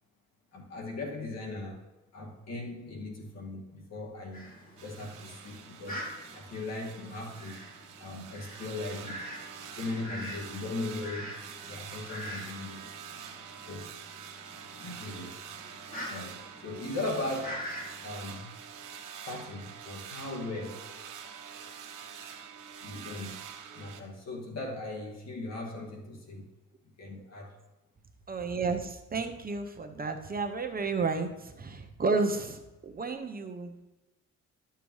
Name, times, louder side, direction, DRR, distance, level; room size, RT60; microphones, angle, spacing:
voice 1, 0.5-1.9 2.1-4.5 4.8-7.7 8.0-9.3 9.7-12.9 13.7-14.0 14.8-15.4 16.1-17.7 18.0-18.6 19.3-20.9 22.8-23.4 23.7-26.6 27.0-27.6, left 2 dB, 60° left, -1 dB, 2.2 m, -38 dB
Fowl, 4.3-18.0, equal, 30° left, 2.8 m, -45 dB
sound 1, 4.8-24.0, right 7 dB, 90° right, 1.2 m, -46 dB
voice 2, 28.3-33.8, right 4 dB, 30° right, 5 dB, 0.9 m, -32 dB
12.0 x 6.9 x 3.2 m, 1.0 s
cardioid pair, 90°, 30 cm